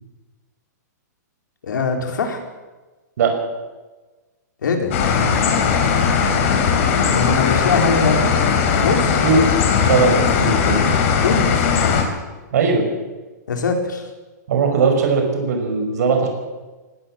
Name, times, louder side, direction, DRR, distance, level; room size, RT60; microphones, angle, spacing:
voice 1, 1.6-2.4 4.6-4.9 7.1-8.3 8.8-9.2 11.2-11.7 13.5-14.1, left 4 dB, 85° left, 3 dB, 4.7 m, -22 dB
sound 1, 4.9-12.0, left 6 dB, 45° left, 4.1 m, -18 dB
voice 2, 9.8-10.8 12.5-12.9 14.5-16.3, right 4 dB, 60° right, 4 dB, 5.6 m, -18 dB
19.5 x 18.5 x 7.4 m, 1.2 s
hypercardioid pair, 160°, 10 cm